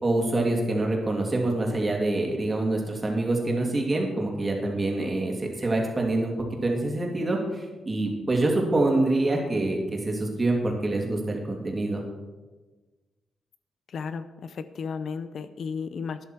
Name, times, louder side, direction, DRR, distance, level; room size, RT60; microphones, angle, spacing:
voice 1, 0.0-6.3 6.6-12.0, right 2 dB, 25° right, 0 dB, 2.8 m, -26 dB
voice 2, 13.9-16.2, left 5 dB, 60° left, 12 dB, 0.6 m, -34 dB
12.5 x 10.5 x 4.6 m, 1.3 s
cardioid pair, 110°, 0 cm